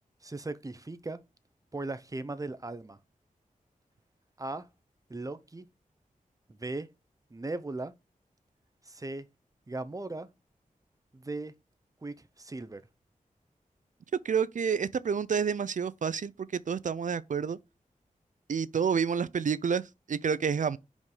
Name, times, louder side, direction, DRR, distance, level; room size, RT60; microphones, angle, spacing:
voice 1, 0.2-1.2 1.7-3.0 4.4-4.7 5.1-5.7 6.5-6.9 7.3-7.9 8.8-9.3 9.7-10.3 11.1-11.6 12.0-12.8, right 2 dB, 25° right, 0.7 m, -38 dB
voice 2, 14.2-17.6 18.5-19.8 20.1-20.8, right 6 dB, 65° right, 0.5 m, -29 dB
5.2 x 4.7 x 5.5 m
wide cardioid pair, 80°, 14 cm